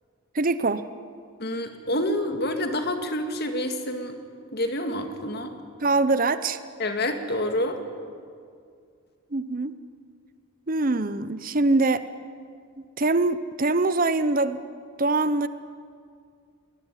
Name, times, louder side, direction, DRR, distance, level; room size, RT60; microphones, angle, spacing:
voice 1, 0.3-0.8 5.8-6.6 9.3-9.7 10.7-12.0 13.0-14.6 15.0-15.5, right 2 dB, 40° right, 13 dB, 0.8 m, -23 dB
voice 2, 1.4-4.2 4.5-5.5 6.8-7.8, left 1 dB, 45° left, 6 dB, 2.2 m, -28 dB
22.5 x 20.0 x 10.0 m, 2.2 s
head